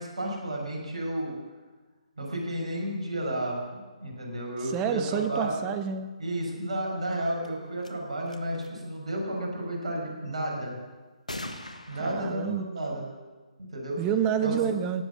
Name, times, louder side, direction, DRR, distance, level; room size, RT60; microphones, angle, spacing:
voice 1, 0.0-1.4 2.2-5.6 6.2-10.8 11.9-13.1 13.6-14.0 14.4-14.6, right 1 dB, 60° right, -1 dB, 5.9 m, -32 dB
voice 2, 4.7-6.1 12.0-12.6 14.0-15.0, right 8 dB, 20° right, 10 dB, 0.9 m, -28 dB
sound 1, 7.4-7.5 7.8-7.9 8.3-8.7 11.3-12.2, left 1 dB, 85° left, 1.5 m, -39 dB
18.0 x 8.2 x 8.6 m, 1.3 s
figure-of-eight pair, 140°, 4 cm